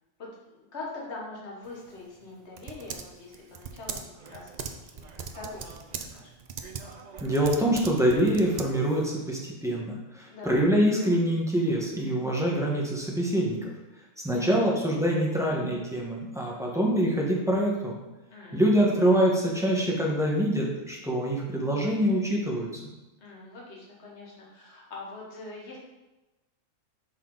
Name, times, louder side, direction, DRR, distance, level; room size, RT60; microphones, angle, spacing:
voice 1, 0.2-4.5 4.9-5.8 6.1-6.3 10.3-10.6 14.3-14.5 18.3-18.6 23.2-25.8, left 3 dB, 55° left, -3 dB, 1.7 m, -43 dB
Typing, 1.6-9.1, right 5 dB, 75° right, 0.3 m, -41 dB
voice 2, 7.2-13.7 14.2-17.9 18.5-22.7, equal, ahead, -3 dB, 1.2 m, -25 dB
6.2 x 5.5 x 4.0 m, 1.1 s
omnidirectional pair, 1.4 m